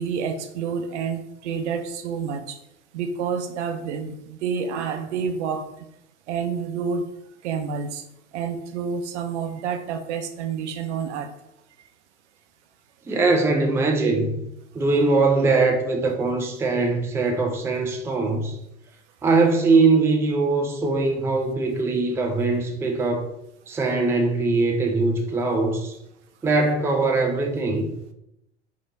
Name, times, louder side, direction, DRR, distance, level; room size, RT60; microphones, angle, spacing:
voice 1, 0.0-2.6 2.9-5.7 6.3-7.1 7.4-8.0 8.3-11.3 17.3-17.4, right 6 dB, 70° right, 0.6 m, -29 dB
voice 2, 13.1-14.4 14.7-18.6 19.2-23.3 23.7-25.9 26.4-27.9, right 3 dB, 5° right, 0.4 m, -21 dB
3.3 x 2.9 x 3.8 m
hypercardioid pair, 100°, 36 cm